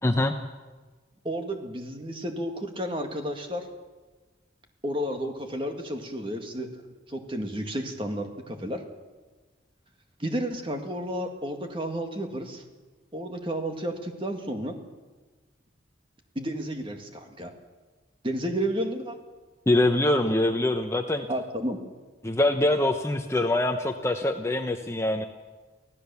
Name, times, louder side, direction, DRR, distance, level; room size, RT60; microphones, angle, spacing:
voice 1, 0.0-0.3 19.7-21.3 22.2-25.3, left 1 dB, 15° left, 5 dB, 0.8 m, -24 dB
voice 2, 1.2-3.6 4.8-6.7 7.1-8.8 10.2-12.6 13.1-14.8 16.4-17.5 18.2-19.2 21.3-21.8, equal, 25° right, 5 dB, 2.0 m, -31 dB
25.0 x 16.5 x 7.0 m, 1.3 s
head